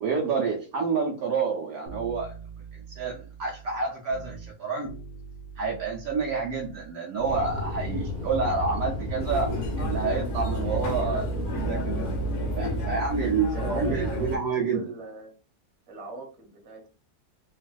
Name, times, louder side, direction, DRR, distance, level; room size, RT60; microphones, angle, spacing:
voice 1, 0.0-2.3 2.7-4.9 5.6-11.3 11.5-12.0 12.5-14.8, right 5 dB, 75° right, -2 dB, 1.1 m, -28 dB
sound 1, 1.9-4.5 4.8-6.9 7.2-10.6 10.8-13.5 13.8-13.9, right 2 dB, 60° left, 0.7 m, -43 dB
sound 2, 7.2-12.9, equal, 25° left, 1.1 m, -34 dB
sound 3, 9.2-14.4, equal, 80° left, 1.3 m, -30 dB
voice 2, 13.2-15.3 15.9-16.9, right 2 dB, 50° right, 1 dB, 1.1 m, -39 dB
3.3 x 2.4 x 2.2 m, 0.35 s
omnidirectional pair, 1.7 m